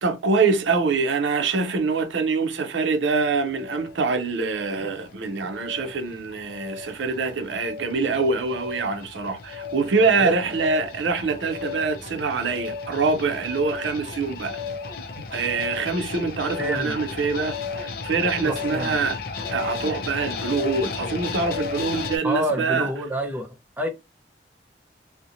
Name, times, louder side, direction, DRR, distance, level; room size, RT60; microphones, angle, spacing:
voice 1, 0.0-14.6 15.2-19.2 19.5-22.9, right 4 dB, 90° right, 0.5 m, -24 dB
sound 1, 3.2-22.2, left 5 dB, 55° left, 0.4 m, -34 dB
voice 2, 16.6-16.9 18.4-19.0 22.2-23.9, equal, 10° right, 0.4 m, -28 dB
2.7 x 2.0 x 2.5 m
head